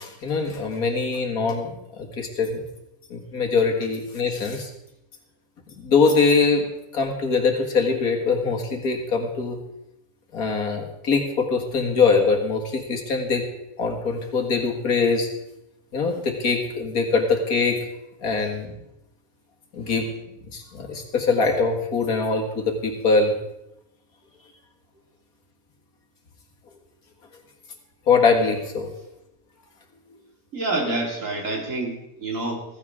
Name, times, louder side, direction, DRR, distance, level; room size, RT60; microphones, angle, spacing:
voice 1, 0.0-2.6 3.1-4.7 5.8-6.7 6.9-9.6 10.3-13.4 13.8-15.3 15.9-17.8 18.2-18.7 19.7-20.1 20.5-23.3 28.1-28.9, left 4 dB, 85° left, 2 dB, 2.3 m, -22 dB
voice 2, 30.5-32.6, right 2 dB, 60° right, 1 dB, 2.9 m, -27 dB
15.0 x 15.0 x 3.7 m, 0.87 s
omnidirectional pair, 1.5 m